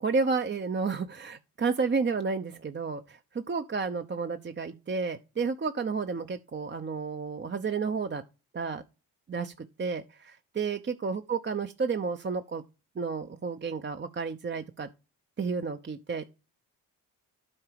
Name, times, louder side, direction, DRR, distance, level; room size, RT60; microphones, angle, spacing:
voice 1, 0.0-8.2 8.5-8.8 9.3-12.6 13.0-14.9 15.4-16.2, right 4 dB, 30° right, 0.7 m, -31 dB
8.8 x 4.7 x 4.6 m
supercardioid pair, 50°, 40 cm